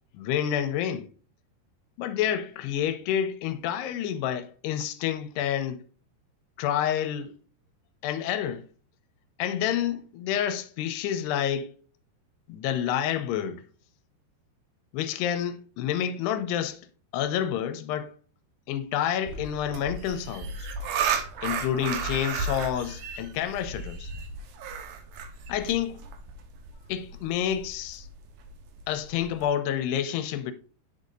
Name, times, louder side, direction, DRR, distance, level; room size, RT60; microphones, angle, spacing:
voice 1, 0.1-1.1 2.0-5.8 6.6-7.3 8.0-8.6 9.4-11.7 12.5-13.6 14.9-16.8 17.1-18.1 18.7-20.9 21.4-24.1 25.5-26.0 26.9-28.1 28.9-30.5, left 10 dB, 90° left, 2.8 m, -29 dB
sound 1, 19.2-29.5, right 5 dB, 70° right, 2.8 m, -34 dB
8.7 x 6.5 x 2.6 m
omnidirectional pair, 4.8 m